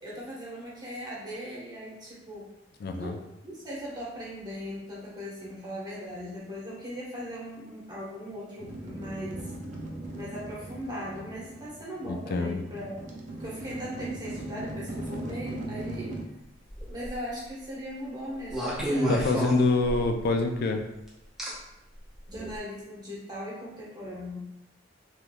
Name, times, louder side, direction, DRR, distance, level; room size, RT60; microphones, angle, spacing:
voice 1, 0.0-2.5 2.9-9.5 10.1-13.0 13.4-16.2 16.9-19.4 22.3-24.4, equal, 20° right, -7 dB, 1.0 m, -39 dB
voice 2, 2.8-3.2 12.1-12.6 19.1-20.8, left 3 dB, 55° left, 5 dB, 0.3 m, -26 dB
sound 1, 8.6-16.2, right 1 dB, 40° right, 0.5 m, -39 dB
sound 2, 16.7-17.1 18.5-20.3 21.4-21.5 22.3-22.5, equal, ahead, 0.7 m, -29 dB
3.4 x 3.0 x 2.2 m, 0.88 s
head